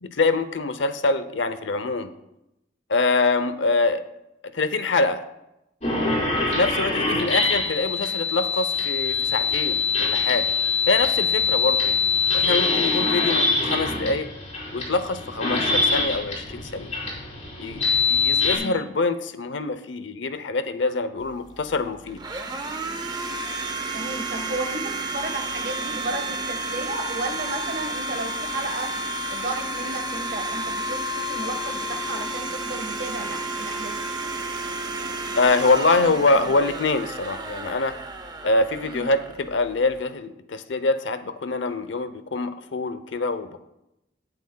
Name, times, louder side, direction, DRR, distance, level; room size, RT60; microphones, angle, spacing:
voice 1, 0.0-2.1 2.9-4.0 4.5-5.3 6.4-10.5 10.9-11.9 12.3-14.3 14.7-16.9 17.6-22.2 35.3-37.9 38.4-43.6, left 3 dB, 85° left, 12 dB, 0.7 m, -24 dB
sound 1, 5.8-18.6, left 4 dB, 40° left, 4.4 m, -24 dB
Domestic sounds home sounds, 21.2-40.0, right 2 dB, 25° right, 0.8 m, -31 dB
voice 2, 23.9-24.8 25.1-28.9 29.3-33.9 38.8-39.1, right 2 dB, 50° right, 4 dB, 1.4 m, -33 dB
18.5 x 8.0 x 2.3 m, 0.87 s
head